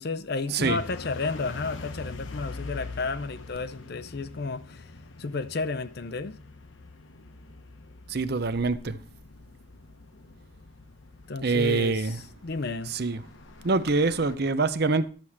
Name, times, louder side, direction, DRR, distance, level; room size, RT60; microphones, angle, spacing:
voice 1, 0.0-4.9 5.2-6.4 11.3-12.9, left 4 dB, 50° left, 0.6 m, -32 dB
sound 1, 0.6-14.4, left 3 dB, 70° left, 1.0 m, -44 dB
voice 2, 8.1-9.0 11.4-12.2 12.9-13.2 13.6-15.1, right 3 dB, 50° right, 0.7 m, -25 dB
12.0 x 4.8 x 7.2 m
head